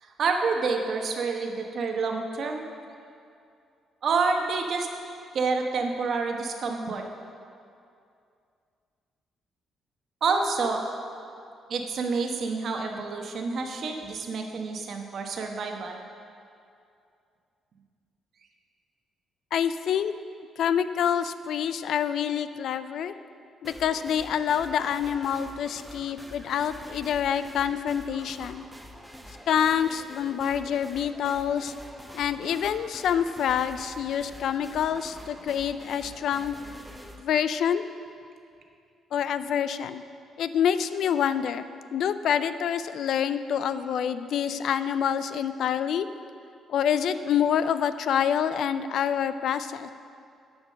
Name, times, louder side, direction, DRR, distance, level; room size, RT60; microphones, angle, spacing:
voice 1, 0.0-2.7 4.0-4.9 5.3-7.0 10.2-10.8 11.7-16.0, right 4 dB, 60° right, 3 dB, 1.1 m, -28 dB
voice 2, 19.5-20.1 20.6-23.1 23.6-28.6 29.5-31.7 32.1-36.5 37.2-37.8 39.1-40.0 40.4-41.6 41.9-46.1 46.7-49.9, left 8 dB, 70° left, 12 dB, 0.3 m, -27 dB
sound 1, 23.6-37.2, equal, ahead, 0.8 m, -46 dB
10.0 x 5.1 x 6.5 m, 2.4 s
cardioid pair, 90°, 0 cm